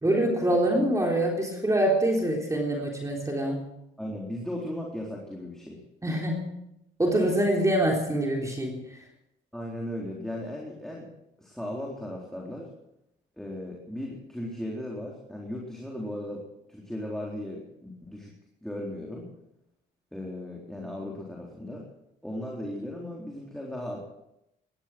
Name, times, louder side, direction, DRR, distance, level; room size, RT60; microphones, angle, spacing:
voice 1, 0.0-3.7 6.0-6.5 7.0-9.0, right 1 dB, 15° right, 0 dB, 3.6 m, -25 dB
voice 2, 4.0-5.8 9.5-11.1 11.4-12.7 13.4-16.4 16.7-18.3 18.6-19.3 20.1-21.8 22.2-24.0, left 1 dB, ahead, -2 dB, 3.9 m, -36 dB
18.5 x 13.0 x 6.1 m, 0.83 s
cardioid pair, 90°, 20 cm